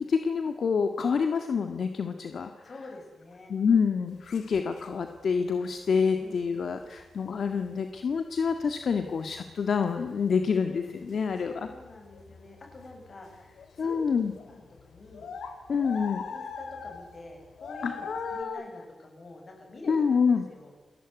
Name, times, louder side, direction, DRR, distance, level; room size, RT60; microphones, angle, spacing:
voice 1, 0.0-2.5 3.5-11.7 13.8-14.3 15.7-16.2 17.8-18.6 19.9-20.5, left 6 dB, 65° left, 7 dB, 1.7 m, -27 dB
voice 2, 2.6-3.5 6.2-6.7 11.4-14.0 14.5-15.3 16.2-18.1 18.3-19.9 20.5-20.7, left 2 dB, 45° left, 2 dB, 7.6 m, -47 dB
sound 1, 4.3-4.9 6.8-7.0 7.6-7.7 8.0-10.5 10.8-18.4, left 5 dB, 85° left, 3.1 m, -42 dB
28.5 x 20.0 x 9.5 m, 1.3 s
wide cardioid pair, 100°, 0 cm